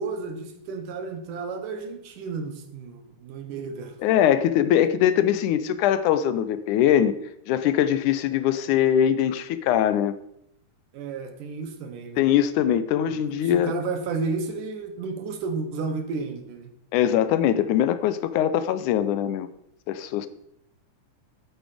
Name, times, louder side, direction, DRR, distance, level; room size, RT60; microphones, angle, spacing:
voice 1, 0.0-3.9 10.9-12.2 13.1-16.7, right 4 dB, 90° right, 3.0 m, -32 dB
voice 2, 4.0-7.2 7.5-10.2 12.2-13.7 16.9-19.5 19.9-20.3, left 10 dB, 85° left, 2.2 m, -22 dB
12.0 x 9.0 x 5.0 m
omnidirectional pair, 3.6 m